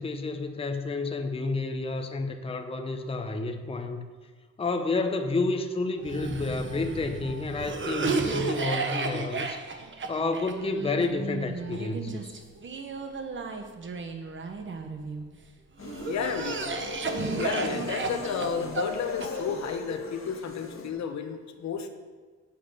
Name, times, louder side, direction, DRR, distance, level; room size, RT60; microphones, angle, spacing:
voice 1, 0.0-4.1 4.6-9.6 10.1-12.4, left 3 dB, 20° left, 5 dB, 0.8 m, -30 dB
Cough, 6.0-15.2 15.8-19.8, right 4 dB, 40° right, 1.1 m, -33 dB
sound 1, 15.8-20.9, left 4 dB, 45° left, 1.5 m, -38 dB
voice 2, 16.1-16.8 17.4-21.9, left 6 dB, 65° left, 7 dB, 1.1 m, -32 dB
8.5 x 7.9 x 5.6 m, 1.5 s
cardioid pair, 90°, 30 cm